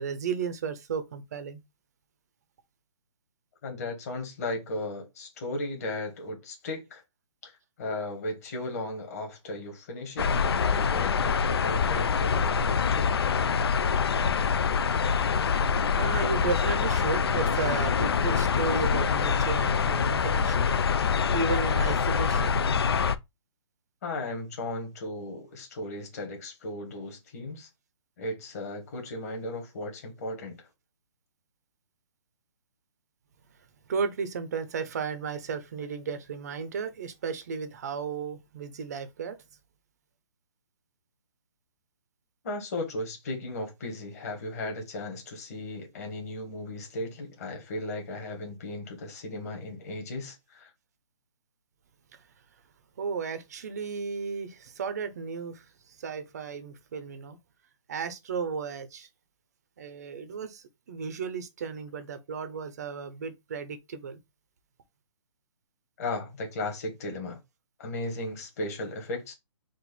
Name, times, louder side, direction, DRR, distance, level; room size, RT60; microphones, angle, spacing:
voice 1, 0.0-1.6 14.9-15.2 15.7-20.7 21.3-22.6 33.9-39.4 53.0-55.6 56.0-57.4 57.9-59.1 59.8-64.2, right 5 dB, 30° right, 0.7 m, -34 dB
voice 2, 3.6-7.0 7.4-13.1 24.0-27.7 28.2-30.7 42.4-50.7 66.0-67.4 67.8-69.3, left 2 dB, 30° left, 1.6 m, -36 dB
sound 1, 10.2-23.1, left 6 dB, 50° left, 0.4 m, -25 dB
4.5 x 2.5 x 4.1 m
hypercardioid pair, 170°, 16 cm